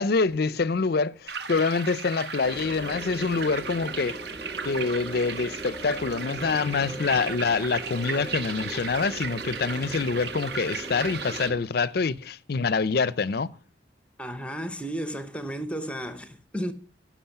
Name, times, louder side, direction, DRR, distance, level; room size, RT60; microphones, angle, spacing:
voice 1, 0.0-4.2 4.6-13.5, left 4 dB, 55° left, 0.5 m, -26 dB
sound 1, 1.3-11.5, right 6 dB, 60° right, 1.1 m, -36 dB
sound 2, 2.4-11.6, right 1 dB, 20° right, 2.8 m, -40 dB
voice 2, 14.2-16.7, equal, 5° left, 0.8 m, -33 dB
16.0 x 6.1 x 5.8 m
head